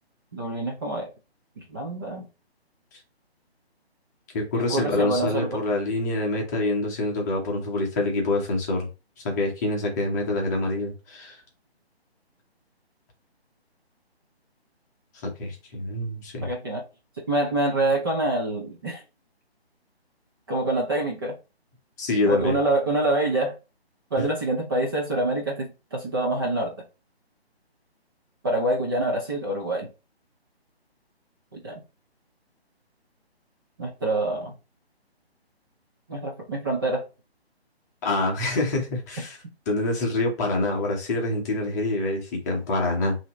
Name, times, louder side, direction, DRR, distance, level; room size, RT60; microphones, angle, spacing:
voice 1, 0.3-1.1 1.7-2.2 4.7-5.6 16.4-16.8 17.2-19.0 20.5-21.3 22.2-23.5 24.1-26.7 28.4-29.9 31.5-31.8 33.8-34.5 36.1-37.0, right 2 dB, 20° right, 0.7 m, -26 dB
voice 2, 4.3-8.9 9.2-11.4 15.2-16.5 22.0-22.6 24.2-24.3 38.0-39.4 39.7-43.2, left 2 dB, 15° left, 0.9 m, -26 dB
5.5 x 2.8 x 3.0 m
figure-of-eight pair, 150°, 32 cm